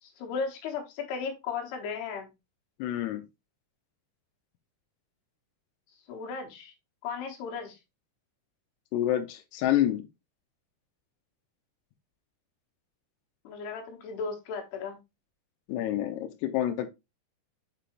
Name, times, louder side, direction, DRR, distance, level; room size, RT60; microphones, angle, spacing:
voice 1, 0.0-2.3 6.1-6.7 7.0-7.8 13.4-15.0, left 5 dB, 65° left, 3.1 m, -35 dB
voice 2, 2.8-3.2 8.9-10.0 15.7-16.9, left 12 dB, 85° left, 2.4 m, -28 dB
6.8 x 4.8 x 3.1 m
omnidirectional pair, 5.5 m